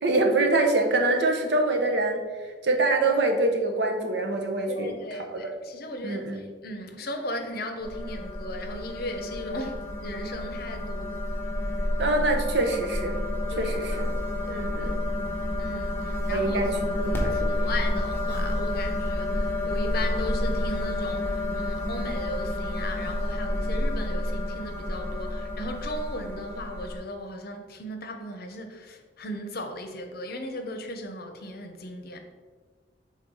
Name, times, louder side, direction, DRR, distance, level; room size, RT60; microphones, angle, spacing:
voice 1, 0.0-2.2 2.6-4.9 5.3-5.5 6.0-6.4 12.0-13.2 13.6-14.1 14.5-14.9 16.3-17.7, right 2 dB, 65° right, 0.9 m, -25 dB
voice 2, 4.7-11.1 13.5-14.2 14.5-15.1 15.6-16.7 17.0-32.2, left 1 dB, 55° left, 0.8 m, -37 dB
sound 1, 7.8-27.0, left 1 dB, 10° left, 1.1 m, -29 dB
5.8 x 4.1 x 4.6 m
head